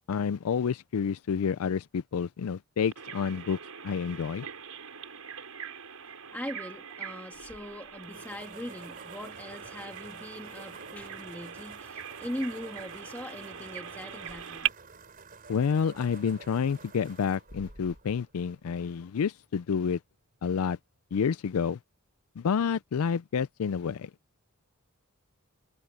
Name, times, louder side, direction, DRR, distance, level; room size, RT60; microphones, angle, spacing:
voice 1, 0.1-3.6 3.8-4.5 15.5-20.0 20.4-20.8 21.1-21.8 22.4-24.1, left 6 dB, 75° left, 0.4 m, -29 dB
Bird vocalization bird call bird song, 2.9-14.7, right 9 dB, 80° right, 4.5 m, -41 dB
voice 2, 6.3-14.7, left 1 dB, 10° left, 1.4 m, -40 dB
sound 1, 7.3-19.2, right 3 dB, 40° right, 5.0 m, -50 dB
head